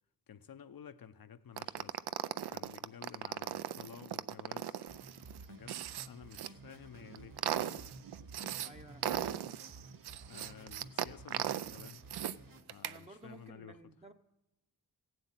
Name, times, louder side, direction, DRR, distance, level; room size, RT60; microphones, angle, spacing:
voice 1, 0.3-2.0 2.5-4.8 5.4-7.9 9.0-9.3 10.3-12.1 12.7-13.8, left 8 dB, 60° left, 0.7 m, -53 dB
sound 1, 1.6-6.5 7.0-8.7 9.0-12.4 12.7-13.0, right 11 dB, 80° right, 0.6 m, -38 dB
sound 2, 4.9-12.6, right 2 dB, 55° right, 1.7 m, -53 dB
voice 2, 8.6-9.4 12.8-14.1, right 2 dB, 15° right, 0.7 m, -54 dB
15.5 x 7.8 x 8.9 m
wide cardioid pair, 85°, 39 cm